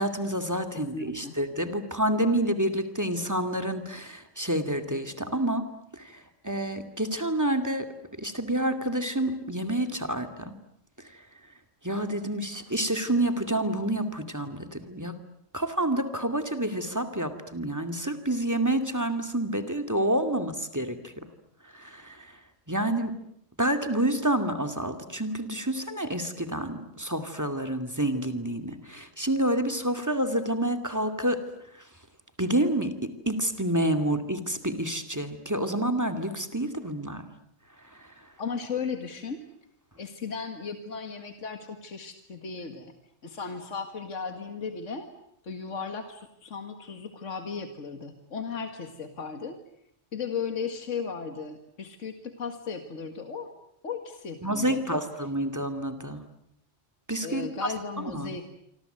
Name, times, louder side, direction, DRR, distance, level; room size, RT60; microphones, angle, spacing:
voice 1, 0.0-5.7 5.9-6.0 6.4-7.9 8.2-10.5 11.8-15.1 15.5-21.0 21.7-22.2 22.7-23.1 23.6-31.4 32.4-37.2 54.4-56.2 57.1-57.5 58.1-58.3, right 1 dB, 15° right, 11 dB, 2.4 m, -28 dB
voice 2, 0.9-1.4 38.4-39.4 40.0-42.9 43.2-45.1 45.4-49.6 50.1-53.5 53.8-55.0 57.2-58.5, left 5 dB, 70° left, 7 dB, 2.2 m, -36 dB
26.5 x 25.5 x 8.0 m, 0.73 s
omnidirectional pair, 1.3 m